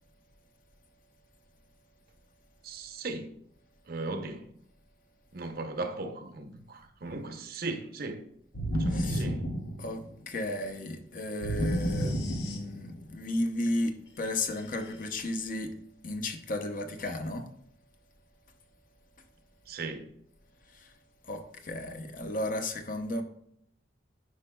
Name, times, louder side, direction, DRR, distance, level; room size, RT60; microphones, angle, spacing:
voice 1, 2.6-3.3 3.9-4.5 5.3-8.3 8.7-9.5 19.7-20.1, right 3 dB, 55° right, 0.7 m, -37 dB
sound 1, 8.5-10.3 11.4-13.1, equal, 70° left, 1.0 m, -31 dB
voice 2, 8.9-9.3 9.8-15.8 16.0-17.5 20.7-20.9 21.2-23.2, left 1 dB, 50° left, 0.7 m, -34 dB
9.5 x 5.3 x 2.2 m
head